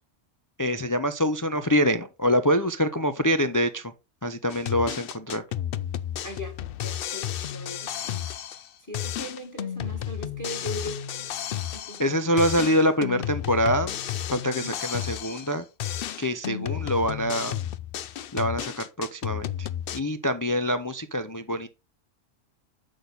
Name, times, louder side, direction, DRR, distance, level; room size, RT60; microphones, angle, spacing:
voice 1, 0.6-3.9 4.2-5.4 12.0-14.0 14.3-15.6 16.2-17.6 18.3-19.7 19.9-21.7, equal, 30° left, 0.3 m, -25 dB
sound 1, 4.5-8.7 8.9-12.1 12.4-15.5 15.8-20.0, left 10 dB, 60° left, 0.6 m, -32 dB
voice 2, 6.2-6.5 6.8-8.1 8.9-11.3 11.7-12.1 14.5-14.7 18.5-18.6, equal, 15° left, 1.4 m, -39 dB
8.3 x 6.2 x 3.9 m
omnidirectional pair, 1.3 m